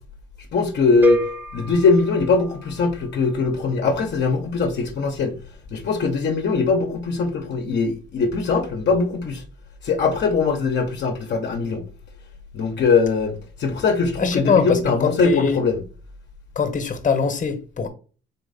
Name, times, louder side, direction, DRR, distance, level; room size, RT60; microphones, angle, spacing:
voice 1, 0.5-1.2 1.5-5.3 5.7-9.4 9.8-11.8 12.5-13.3 13.6-15.8, left 4 dB, 60° left, 0.8 m, -21 dB
sound 1, 1.0-3.1, equal, 10° right, 0.6 m, -27 dB
voice 2, 14.2-15.6 16.6-17.9, left 6 dB, 40° left, 1.0 m, -22 dB
4.2 x 3.1 x 4.0 m
cardioid pair, 90°, 20 cm